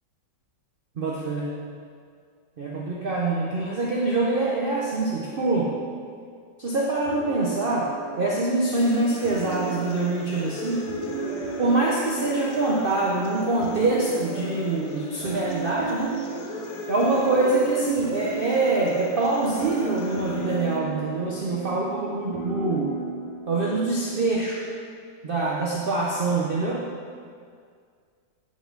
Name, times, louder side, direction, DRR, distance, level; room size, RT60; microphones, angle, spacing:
voice 1, 1.0-1.5 2.6-5.7 6.6-7.9 8.2-10.9 11.6-16.1 16.9-22.9 23.5-24.6 25.2-26.8, right 2 dB, 75° right, -4 dB, 0.5 m, -24 dB
sound 1, 7.0-24.5, right 5 dB, 50° right, 1.6 m, -36 dB
sound 2, 8.8-20.8, left 2 dB, 65° left, 1.3 m, -37 dB
8.7 x 5.2 x 3.8 m, 2.1 s
omnidirectional pair, 2.0 m